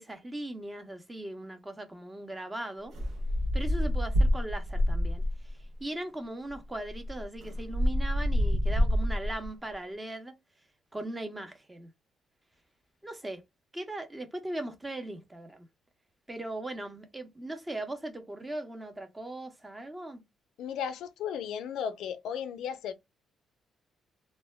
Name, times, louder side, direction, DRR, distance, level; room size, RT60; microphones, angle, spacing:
voice 1, 0.0-2.9 3.5-10.4 10.9-11.9 13.0-13.4 13.7-15.7 16.3-20.2, right 1 dB, 15° right, 0.7 m, -39 dB
sound 1, 2.9-5.5 6.5-6.6 6.8-9.5, equal, 65° right, 0.7 m, -27 dB
voice 2, 20.6-22.9, left 8 dB, 80° left, 0.4 m, -35 dB
2.1 x 2.1 x 3.3 m
cardioid pair, 90°, 0 cm